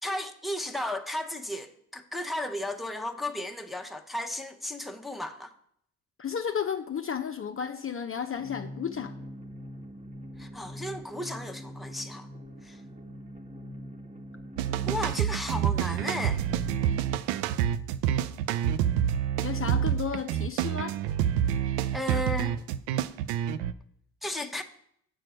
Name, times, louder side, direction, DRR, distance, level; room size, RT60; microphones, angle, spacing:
voice 1, 0.0-5.5 10.4-12.3 12.6-12.8 14.8-16.4 21.9-22.5 24.2-24.6, left 1 dB, ahead, 0.9 m, -34 dB
voice 2, 6.2-9.1 19.4-21.0, left 7 dB, 35° left, 0.7 m, -33 dB
sound 1, 8.3-17.1, equal, 15° right, 1.4 m, -43 dB
sound 2, 14.6-23.7, right 10 dB, 80° right, 0.5 m, -28 dB
7.7 x 4.5 x 6.3 m
hypercardioid pair, 50°, 40 cm